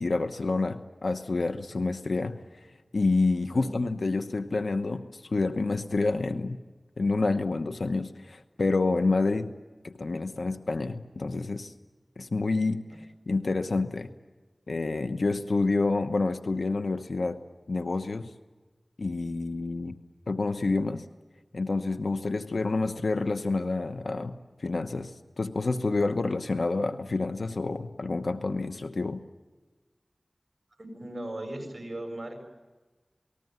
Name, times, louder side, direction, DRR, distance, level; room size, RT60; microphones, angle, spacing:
voice 1, 0.0-2.4 2.9-6.6 7.0-9.5 9.8-11.7 12.2-12.8 13.3-14.1 14.7-17.4 17.7-18.3 19.0-20.0 20.3-21.1 21.5-29.2, left 3 dB, 85° left, 8 dB, 1.0 m, -28 dB
voice 2, 30.8-32.4, right 1 dB, 45° right, 4 dB, 7.2 m, -38 dB
28.0 x 20.0 x 9.5 m, 1.2 s
wide cardioid pair, 60°, 0 cm